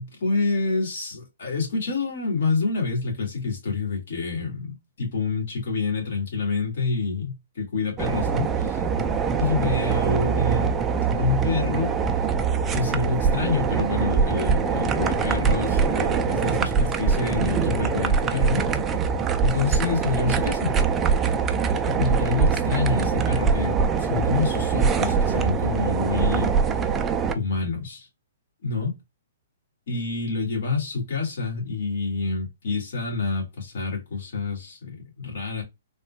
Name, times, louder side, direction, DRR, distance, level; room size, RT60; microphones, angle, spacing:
voice 1, 0.0-8.8 9.4-10.7 11.2-11.9 12.7-18.7 19.4-20.8 21.9-26.5 27.3-28.1 28.6-29.0 29.9-35.6, left 4 dB, 65° left, 1.8 m, -27 dB
sound 1, 8.0-27.3, right 6 dB, 15° right, 0.3 m, -23 dB
3.6 x 2.2 x 2.2 m
hypercardioid pair, 145°, 0 cm